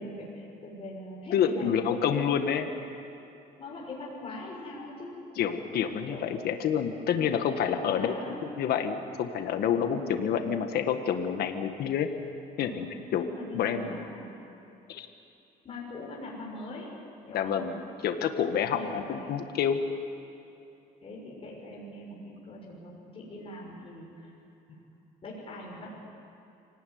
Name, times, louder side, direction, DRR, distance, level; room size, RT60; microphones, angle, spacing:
voice 1, 0.0-2.3 3.6-5.1 6.1-6.4 6.7-6.8 7.1-8.5 9.9-10.2 12.6-12.8 13.1-14.3 15.6-16.9 17.2-17.6 18.6-19.3 21.0-24.3 25.2-25.9, left 2 dB, 35° left, -3 dB, 6.5 m, -42 dB
voice 2, 1.3-2.7 5.4-12.1 12.6-12.9 13.1-13.3 13.5-14.0 14.9-15.1 17.3-19.8, left 8 dB, 70° left, 6 dB, 1.6 m, -28 dB
25.5 x 18.5 x 9.6 m, 2.7 s
cardioid pair, 110°, 17 cm